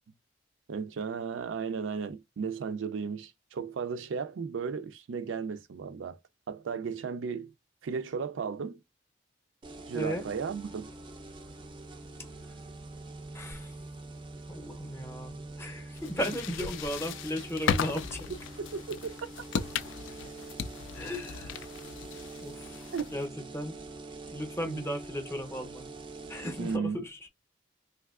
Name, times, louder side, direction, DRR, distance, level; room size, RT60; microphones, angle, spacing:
voice 1, 0.7-6.2 6.5-7.5 7.8-8.8 9.9-10.9 18.7-19.1 22.9-23.1 24.6-24.9 26.6-27.0, right 5 dB, 90° right, 0.4 m, -35 dB
sound 1, 9.6-26.8, right 2 dB, 25° right, 0.4 m, -45 dB
voice 2, 9.9-10.3 13.3-13.7 14.5-18.3 20.9-21.6 22.4-22.9 23.1-23.8 24.3-25.9 26.3-27.2, equal, 15° left, 0.6 m, -36 dB
sound 2, 16.0-23.3, left 7 dB, 85° left, 0.3 m, -36 dB
3.3 x 2.6 x 2.3 m
head